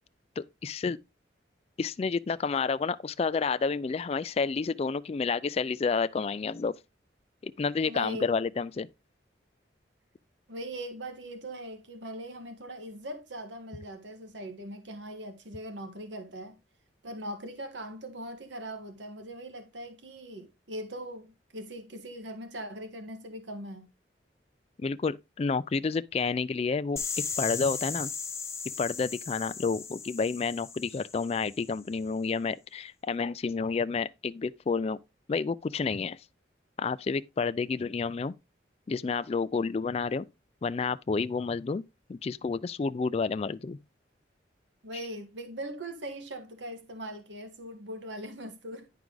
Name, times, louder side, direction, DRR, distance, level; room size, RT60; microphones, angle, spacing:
voice 1, 0.4-1.0 1.8-6.7 7.4-8.9 24.8-27.0 27.4-28.1 28.8-35.0 35.3-36.2 36.8-38.3 38.9-40.3 40.6-41.8 42.1-43.8, left 4 dB, 35° left, 0.3 m, -30 dB
voice 2, 7.8-8.3 10.5-16.6 17.0-23.9 44.8-48.9, right 1 dB, 80° right, 1.5 m, -40 dB
sound 1, 27.0-31.7, left 5 dB, 15° left, 0.8 m, -37 dB
10.5 x 4.7 x 3.8 m
head